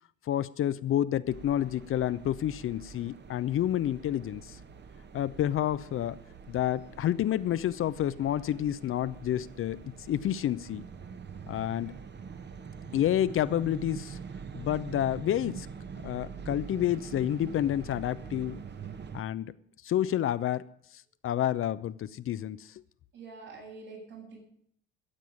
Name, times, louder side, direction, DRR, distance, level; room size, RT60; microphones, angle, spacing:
voice 1, 0.3-4.6 5.1-6.2 6.5-9.8 10.1-10.8 11.5-12.0 12.9-14.2 14.5-15.7 16.0-18.6 19.1-19.5 19.8-20.6 21.2-22.7, left 11 dB, 45° left, 15 dB, 0.7 m, -29 dB
sound 1, 1.3-19.2, right 6 dB, 35° right, 1.2 m, -44 dB
voice 2, 23.1-24.4, right 4 dB, 70° right, -4 dB, 8.0 m, -45 dB
15.0 x 7.6 x 8.7 m, 0.65 s
hypercardioid pair, 55°, 31 cm